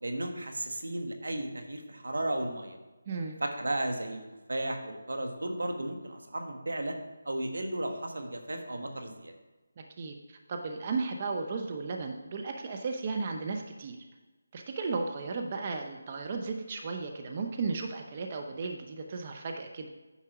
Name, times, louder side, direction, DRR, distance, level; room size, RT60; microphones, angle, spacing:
voice 1, 0.0-2.8 3.4-4.2 4.5-6.9 7.2-9.3, right 1 dB, 80° right, 4 dB, 1.5 m, -34 dB
voice 2, 3.1-3.4 9.8-14.0 14.5-19.9, right 4 dB, 30° right, 3 dB, 0.8 m, -35 dB
9.8 x 4.4 x 5.9 m, 1.2 s
figure-of-eight pair, 165°, 0 cm